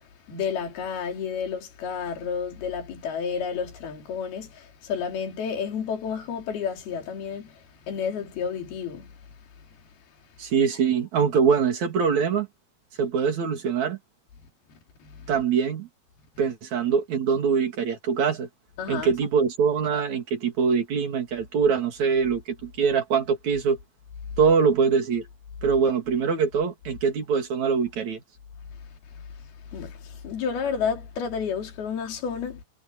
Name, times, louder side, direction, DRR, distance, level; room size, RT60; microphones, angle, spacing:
voice 1, 0.3-9.1 15.0-15.3 16.4-16.5 18.8-19.1 29.1-29.2 29.7-32.6, left 6 dB, 70° left, 5.3 m, -31 dB
voice 2, 10.4-12.5 13.0-14.0 15.3-15.9 16.4-18.5 18.9-23.8 24.4-25.3 25.6-28.2, right 6 dB, 50° right, 3.7 m, -23 dB
omnidirectional pair, 4.6 m